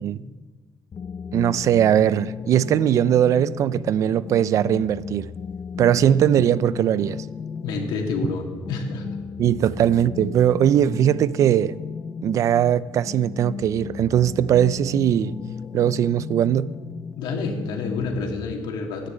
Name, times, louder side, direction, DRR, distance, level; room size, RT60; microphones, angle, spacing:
sound 1, 0.9-18.5, left 6 dB, 25° left, 0.4 m, -34 dB
voice 1, 1.3-5.3 5.8-7.2 9.4-11.7 12.2-15.4 15.7-16.7, right 10 dB, 45° right, 0.4 m, -20 dB
voice 2, 7.6-9.1 17.2-19.1, left 4 dB, 80° left, 2.8 m, -28 dB
13.5 x 10.0 x 9.2 m
cardioid pair, 170°, 8 cm